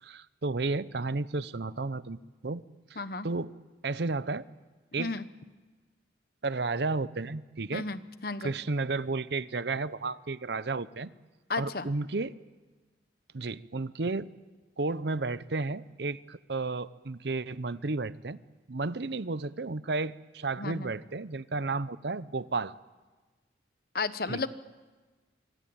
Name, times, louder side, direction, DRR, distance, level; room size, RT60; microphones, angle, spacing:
voice 1, 0.0-2.6 2.9-3.5 3.8-4.4 4.9-5.1 6.4-7.8 8.4-11.1 11.5-12.3 13.3-14.3 14.8-18.4 18.7-22.7 24.3-24.5, right 3 dB, 65° right, 16 dB, 0.7 m, -32 dB
voice 2, 3.0-3.3 5.0-5.2 7.7-8.5 11.5-11.9 20.6-20.9 23.9-24.5, left 3 dB, 55° left, 13 dB, 1.0 m, -33 dB
25.0 x 24.5 x 8.8 m, 1.3 s
head